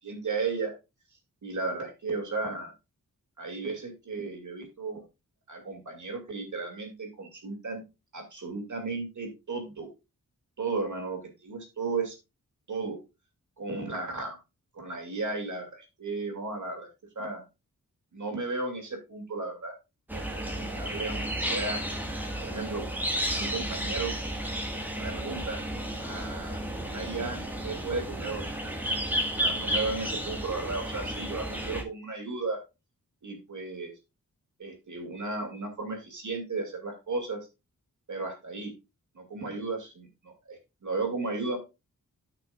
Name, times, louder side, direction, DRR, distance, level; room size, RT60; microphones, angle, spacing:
voice 1, 0.0-0.7 1.4-2.7 3.4-5.0 5.5-7.8 8.1-9.9 10.6-12.2 12.7-13.0 13.6-14.4 14.7-16.9 17.2-17.4 18.1-19.7 20.1-21.8 22.4-22.8 23.2-24.1 25.0-25.6 26.0-28.5 28.8-28.9 29.3-32.6 33.2-33.9 34.6-37.4 38.1-38.7 39.1-41.6, right 3 dB, 60° right, 3 dB, 2.6 m, -34 dB
sound 1, 20.1-31.8, equal, 5° right, 1.6 m, -32 dB
13.0 x 5.9 x 2.4 m, 0.25 s
wide cardioid pair, 135°, 33 cm